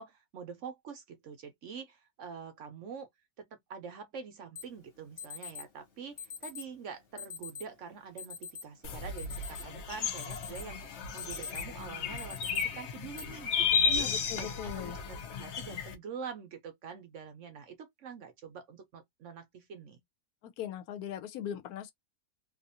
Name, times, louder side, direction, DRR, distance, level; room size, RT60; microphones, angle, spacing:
voice 1, 0.0-3.1 3.4-14.1 14.4-20.0, right 6 dB, 65° right, 0.9 m, -45 dB
Alarm, 4.6-4.7 5.2-5.6 6.2-6.7 7.2-7.7 8.2-8.6 9.0-9.8 10.2-10.7 11.0-11.7 12.2-12.6 13.2-13.3 14.0-14.4, left 6 dB, 45° left, 1.2 m, -42 dB
sound 1, 8.8-15.9, left 6 dB, 60° left, 0.7 m, -33 dB
voice 2, 13.9-15.0 20.4-21.9, left 10 dB, 80° left, 1.0 m, -40 dB
2.7 x 2.4 x 2.7 m
omnidirectional pair, 1.6 m